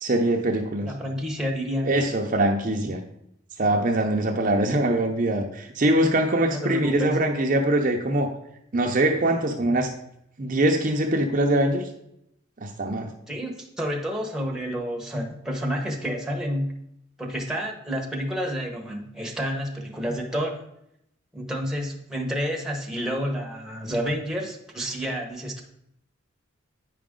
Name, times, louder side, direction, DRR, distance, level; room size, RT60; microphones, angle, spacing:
voice 1, 0.0-0.9 1.8-3.0 3.6-8.3 8.7-9.9 10.4-11.9 12.6-13.1, right 1 dB, 40° right, 3 dB, 0.6 m, -23 dB
voice 2, 0.8-2.0 6.5-7.2 13.3-16.8 17.2-20.6 21.3-25.6, equal, 5° right, 0 dB, 1.0 m, -29 dB
9.2 x 5.0 x 3.7 m, 0.78 s
head